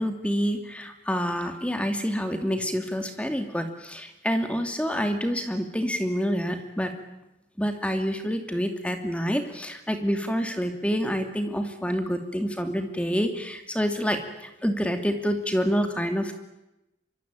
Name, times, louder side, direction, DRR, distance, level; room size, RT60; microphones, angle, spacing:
voice 1, 0.0-6.9 7.6-16.4, equal, 5° left, 6 dB, 2.7 m, -27 dB
25.0 x 24.0 x 9.2 m, 0.92 s
head